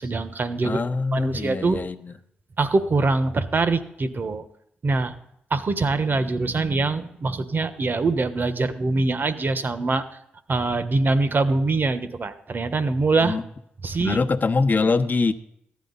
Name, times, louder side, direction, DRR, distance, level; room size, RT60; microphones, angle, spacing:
voice 1, 0.0-0.8 1.1-1.8 2.6-4.4 4.8-5.1 5.5-10.0 10.5-13.4 13.8-14.2, right 3 dB, 45° right, 11 dB, 1.3 m, -23 dB
voice 2, 0.6-2.1 13.2-13.4 14.0-15.3, left 4 dB, 40° left, 8 dB, 1.0 m, -23 dB
14.5 x 10.5 x 4.1 m, 0.75 s
supercardioid pair, 45°, 5 cm